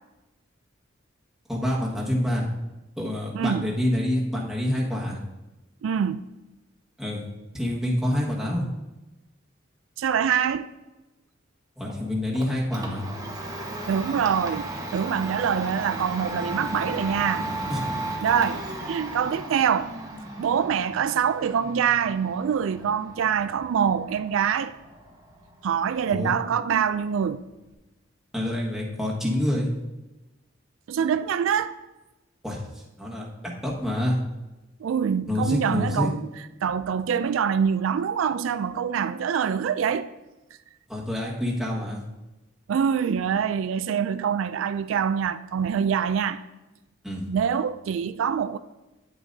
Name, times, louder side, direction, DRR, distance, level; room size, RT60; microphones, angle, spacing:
voice 1, 1.5-2.5 3.0-5.2 7.0-7.3 7.5-8.7 11.8-13.0 17.7-17.8 26.1-26.3 28.3-29.7 32.4-34.2 35.3-36.1 40.9-42.0 47.0-47.2, left 1 dB, 5° right, 1.6 m, -27 dB
voice 2, 3.3-3.7 5.8-6.2 10.0-10.7 13.9-17.5 18.2-18.6 18.9-19.9 20.4-24.7 25.6-27.4 30.9-31.7 34.8-36.2 36.6-40.1 42.7-46.4 47.2-48.6, right 7 dB, 80° right, 0.3 m, -25 dB
Domestic sounds home sounds, 11.9-27.7, right 1 dB, 20° right, 1.1 m, -36 dB
9.4 x 8.8 x 2.7 m
head